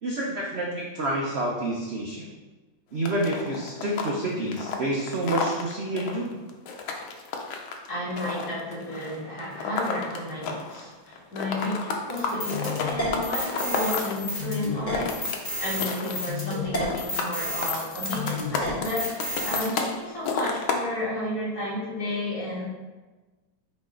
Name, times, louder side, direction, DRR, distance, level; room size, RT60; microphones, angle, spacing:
voice 1, 0.0-2.3 2.9-6.4, right 1 dB, 65° right, -2 dB, 0.6 m, -28 dB
sound 1, 3.1-10.9 11.1-14.2 14.7-15.4 15.7-16.4 16.7-17.3 17.6-19.9 20.2-20.8, left 5 dB, 80° left, 1.5 m, -31 dB
voice 2, 7.9-15.2 15.6-22.6, left 1 dB, 50° left, -7 dB, 2.4 m, -32 dB
sound 2, 12.2-19.7, left 2 dB, 25° left, 1.3 m, -31 dB
8.6 x 3.2 x 3.7 m, 1.2 s
omnidirectional pair, 2.1 m